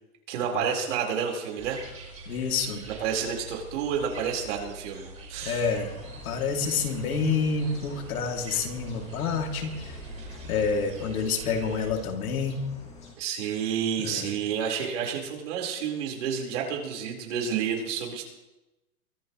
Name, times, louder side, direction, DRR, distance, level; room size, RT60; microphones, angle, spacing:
voice 1, 0.3-1.8 2.9-5.6 13.2-18.2, right 7 dB, 55° right, 0 dB, 4.5 m, -30 dB
sound 1, 1.6-11.9, right 2 dB, 15° right, 4.9 m, -44 dB
voice 2, 2.3-2.9 5.4-5.9 6.2-10.0 10.5-12.7 14.0-14.3, left 5 dB, 80° left, 2 dB, 2.9 m, -28 dB
sound 2, 5.6-13.1, left 3 dB, 15° left, 2.6 m, -46 dB
23.5 x 14.5 x 3.2 m, 1.0 s
hypercardioid pair, 155°, 43 cm